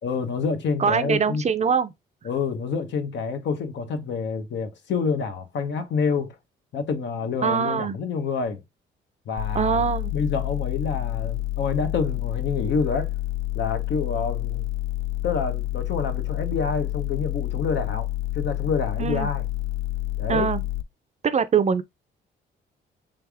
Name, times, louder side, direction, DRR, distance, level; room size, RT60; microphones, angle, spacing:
voice 1, 0.0-1.4 2.2-6.4 6.7-8.6 9.3-9.8 10.1-13.1 13.5-14.6 15.2-18.1 18.3-19.4 20.2-20.5, left 5 dB, 65° left, 1.0 m, -27 dB
voice 2, 0.8-1.9 7.4-8.0 9.5-10.1 19.0-19.3 20.3-20.6 21.2-21.8, right 6 dB, 35° right, 0.5 m, -23 dB
sound 1, 9.4-20.8, left 16 dB, 80° left, 0.4 m, -29 dB
3.6 x 3.4 x 3.4 m
cardioid pair, 90°, 20 cm